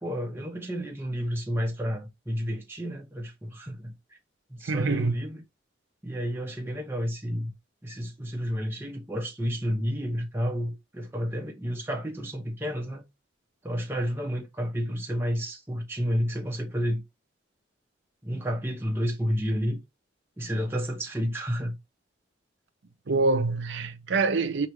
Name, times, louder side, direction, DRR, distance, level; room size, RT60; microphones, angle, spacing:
voice 1, 0.0-3.9 4.5-5.4 6.0-7.5 7.8-13.0 13.6-17.0 18.2-19.8 20.4-21.8, equal, 10° right, 0.8 m, -30 dB
voice 2, 4.7-5.1 23.1-24.7, right 3 dB, 75° right, 0.7 m, -25 dB
4.8 x 3.0 x 3.0 m
head